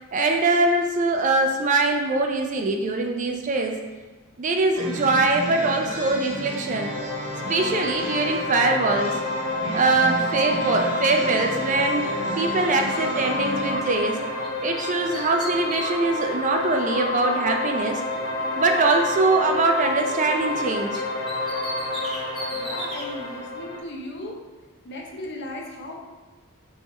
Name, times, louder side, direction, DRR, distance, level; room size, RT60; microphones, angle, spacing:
voice 1, 0.1-3.8 4.4-6.9 7.5-9.2 9.7-14.3 14.6-18.0 18.6-21.0, right 3 dB, 35° right, 3 dB, 0.4 m, -22 dB
sound 1, 4.7-13.8, right 1 dB, 75° right, 1.0 m, -34 dB
sound 2, 6.8-23.8, left 2 dB, 85° left, 0.8 m, -29 dB
Bird, 12.9-14.5 14.8-18.2 18.5-20.6 20.9-23.1, right 1 dB, ahead, 1.1 m, -38 dB
voice 2, 22.5-24.4 24.8-26.0, left 1 dB, 55° left, -1 dB, 0.7 m, -36 dB
4.4 x 3.4 x 3.1 m, 1.3 s
head